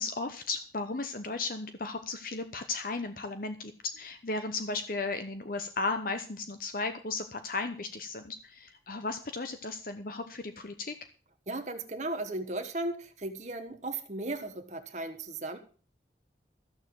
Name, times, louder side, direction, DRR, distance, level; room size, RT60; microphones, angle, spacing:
voice 1, 0.0-11.0, left 3 dB, 50° left, 8 dB, 1.0 m, -35 dB
voice 2, 11.5-15.6, right 2 dB, 40° right, 5 dB, 1.2 m, -36 dB
14.5 x 6.8 x 7.7 m, 0.40 s
head